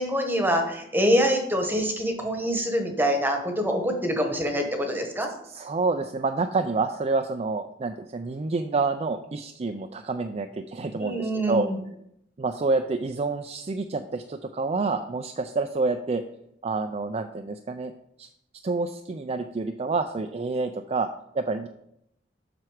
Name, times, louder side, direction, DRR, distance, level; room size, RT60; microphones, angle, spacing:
voice 1, 0.0-5.3 11.0-11.8, equal, 10° right, 4 dB, 1.1 m, -25 dB
voice 2, 5.4-11.7 12.4-16.2 16.6-17.9 18.2-18.3 18.6-21.1 21.3-21.7, right 3 dB, 35° right, 6 dB, 0.4 m, -28 dB
7.6 x 5.9 x 4.9 m, 0.76 s
head